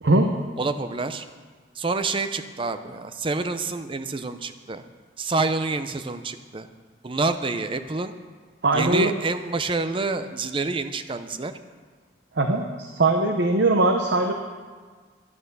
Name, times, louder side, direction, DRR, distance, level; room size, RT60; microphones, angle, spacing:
voice 1, 0.0-0.3 8.6-9.1 12.4-14.3, right 2 dB, 65° right, 4 dB, 0.8 m, -21 dB
voice 2, 0.6-1.2 1.7-4.8 5.2-6.7 7.0-8.2 8.7-11.5, right 3 dB, 30° right, 10 dB, 0.6 m, -27 dB
11.0 x 9.1 x 6.7 m, 1.5 s
head